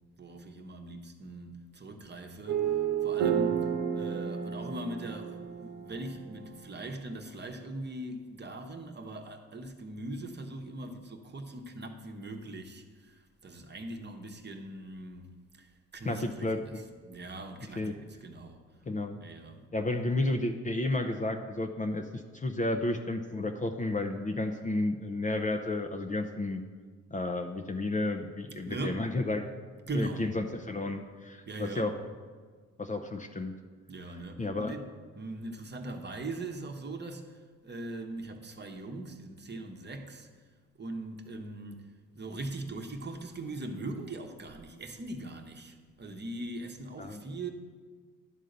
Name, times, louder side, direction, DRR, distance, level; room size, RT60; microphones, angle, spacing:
voice 1, 0.2-16.7 17.0-18.6 19.2-19.7 28.7-29.0 29.9-30.4 31.5-31.9 33.9-34.8 35.1-40.3 40.8-41.8 42.1-47.5, right 2 dB, 30° right, 1.0 m, -41 dB
sound 1, 2.5-6.9, right 8 dB, 65° right, 0.9 m, -31 dB
voice 2, 16.0-16.8 17.8-18.0 18.9-19.2 19.7-26.6 27.1-29.5 29.9-31.9 32.8-33.5 34.4-34.7 47.0-47.2, left 2 dB, 25° left, 0.6 m, -32 dB
11.0 x 3.7 x 6.6 m
supercardioid pair, 70°, 34 cm